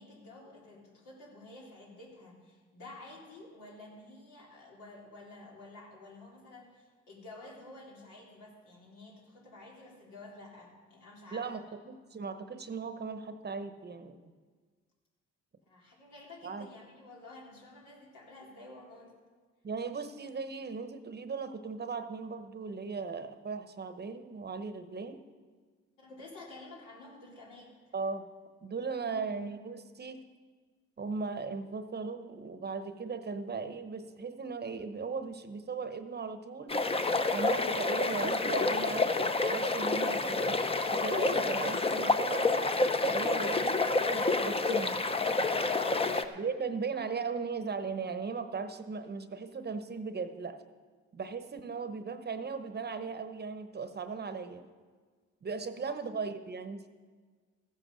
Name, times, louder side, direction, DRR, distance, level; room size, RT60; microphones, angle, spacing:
voice 1, 0.0-11.8 15.7-19.1 26.0-27.8 29.0-29.2 43.2-43.5 45.7-46.2 51.5-51.6 55.6-56.0, left 2 dB, 85° left, -3 dB, 3.7 m, -50 dB
voice 2, 11.3-14.3 16.4-16.7 19.6-25.2 27.9-28.2 28.6-30.2 31.0-36.8 37.3-42.5 43.1-43.7 44.0-45.0 46.4-50.6 51.1-54.7 55.4-56.9, right 5 dB, 35° right, 10 dB, 0.9 m, -37 dB
sound 1, 36.7-46.2, left 3 dB, 20° left, 0.7 m, -29 dB
14.5 x 8.0 x 6.4 m, 1.5 s
cardioid pair, 90°, 30 cm